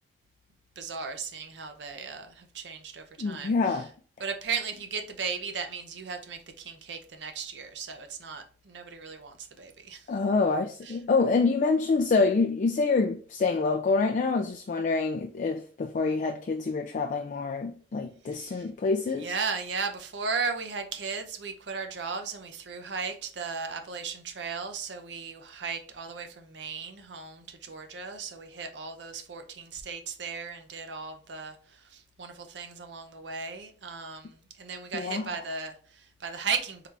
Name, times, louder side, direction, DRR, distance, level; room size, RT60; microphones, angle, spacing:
voice 1, 0.8-3.9 4.2-10.2 10.8-11.0 18.2-18.7 19.2-36.9, right 5 dB, 70° right, 0.7 m, -36 dB
voice 2, 3.2-3.9 10.1-19.3 34.9-35.3, left 4 dB, 45° left, 0.3 m, -26 dB
3.8 x 3.3 x 3.2 m
head